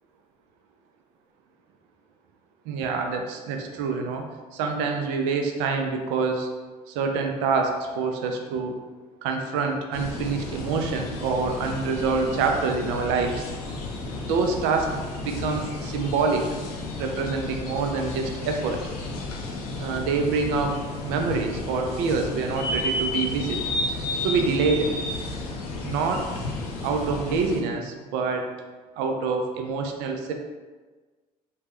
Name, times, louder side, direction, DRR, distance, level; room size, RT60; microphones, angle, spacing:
voice 1, 2.7-4.3 4.5-6.5 6.9-8.8 9.2-13.5 14.2-16.5 17.0-18.9 19.8-20.8 21.0-23.6 24.2-25.0 25.8-26.3 26.8-28.5 29.0-30.3, right 4 dB, 70° right, 4 dB, 0.4 m, -26 dB
sound 1, 9.9-27.6, left 2 dB, 80° left, 0.5 m, -32 dB
2.9 x 2.2 x 3.3 m, 1.3 s
hypercardioid pair, 55°, 19 cm